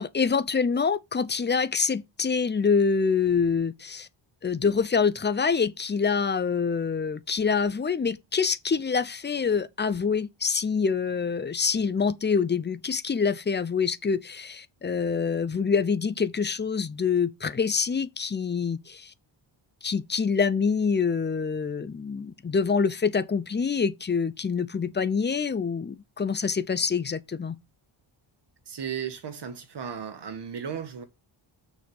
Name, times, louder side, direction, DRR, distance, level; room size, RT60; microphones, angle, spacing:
voice 1, 0.0-4.1 4.4-19.1 19.8-27.6, left 5 dB, 20° left, 0.6 m, -26 dB
voice 2, 28.7-31.0, right 7 dB, 55° right, 1.6 m, -35 dB
6.4 x 4.8 x 5.3 m
wide cardioid pair, 120°, 48 cm